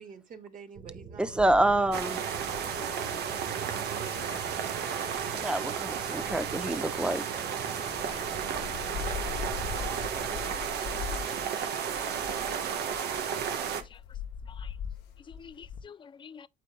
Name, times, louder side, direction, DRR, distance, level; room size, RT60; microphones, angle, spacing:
voice 1, 0.0-2.2, right 6 dB, 50° right, 2.3 m, -47 dB
sound 1, 0.7-10.4, right 6 dB, 35° right, 1.5 m, -45 dB
voice 2, 1.2-2.2 5.4-7.3, right 1 dB, 5° right, 0.8 m, -27 dB
sound 2, 1.4-7.4 7.9-15.8, left 8 dB, 80° left, 1.1 m, -42 dB
sound 3, 1.9-13.8, right 7 dB, 75° right, 1.4 m, -33 dB
voice 3, 2.8-3.2 4.0-4.1 7.8-7.9 8.1-8.2 8.9-9.0 9.8-10.4 11.5-11.8 15.4-16.5, left 7 dB, 30° left, 0.5 m, -48 dB
9.2 x 7.1 x 2.3 m
cardioid pair, 110°, 17 cm